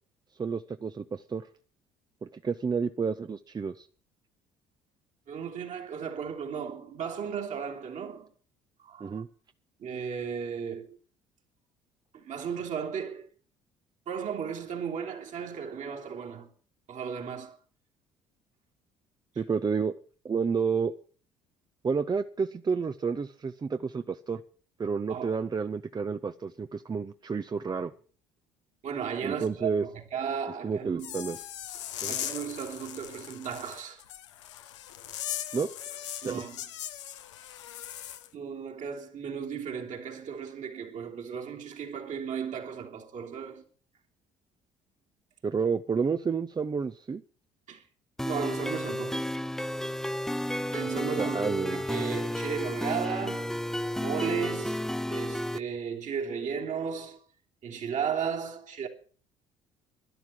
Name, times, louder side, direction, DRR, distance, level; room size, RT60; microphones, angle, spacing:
voice 1, 0.4-1.5 2.2-3.9 9.0-9.3 19.4-19.9 20.2-20.9 21.8-24.4 24.8-27.9 29.2-29.8 30.6-31.4 32.0-32.2 35.5-36.4 45.4-47.2 51.2-51.8, right 5 dB, 30° right, 0.7 m, -30 dB
voice 2, 5.3-8.3 8.8-9.2 9.8-11.0 12.1-13.3 14.1-16.5 16.9-17.6 25.1-25.3 28.8-31.4 32.1-34.0 36.2-36.6 38.3-43.6 47.7-47.8 48.2-49.3 50.7-53.5 54.0-54.8 55.1-57.2 57.6-58.9, right 7 dB, 55° right, 3.2 m, -35 dB
sound 1, 31.0-38.3, left 12 dB, 85° left, 0.9 m, -39 dB
sound 2, 48.2-55.6, left 1 dB, 5° left, 0.6 m, -32 dB
12.0 x 11.0 x 7.6 m
hypercardioid pair, 60°, 15 cm